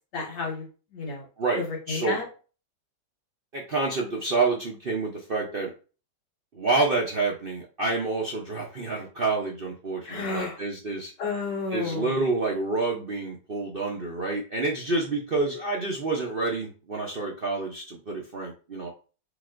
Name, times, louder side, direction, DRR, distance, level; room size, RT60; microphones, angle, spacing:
voice 1, 0.1-0.7 0.9-1.3 1.6-2.3 10.1-10.6 11.2-12.2, left 4 dB, 75° left, -1 dB, 2.4 m, -31 dB
voice 2, 1.4-2.2 3.5-5.7 6.5-11.1 11.7-18.9, right 3 dB, 45° right, -1 dB, 0.7 m, -28 dB
4.9 x 4.0 x 2.5 m, 0.35 s
omnidirectional pair, 1.9 m